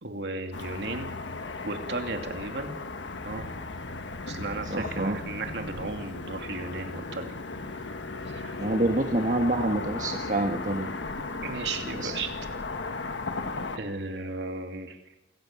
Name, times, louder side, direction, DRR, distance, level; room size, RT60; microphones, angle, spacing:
voice 1, 0.0-1.2 1.6-2.8 3.2-3.5 4.3-7.4 8.2-8.6 11.4-12.3 13.7-15.0, right 3 dB, 70° right, 5 dB, 2.7 m, -35 dB
Car passing by / Traffic noise roadway noise, 0.5-13.8, left 3 dB, 90° left, 1.5 m, -36 dB
voice 2, 4.7-5.2 8.6-10.9 12.0-12.1, right 2 dB, 45° right, 3 dB, 1.4 m, -27 dB
28.0 x 15.0 x 7.4 m, 0.98 s
head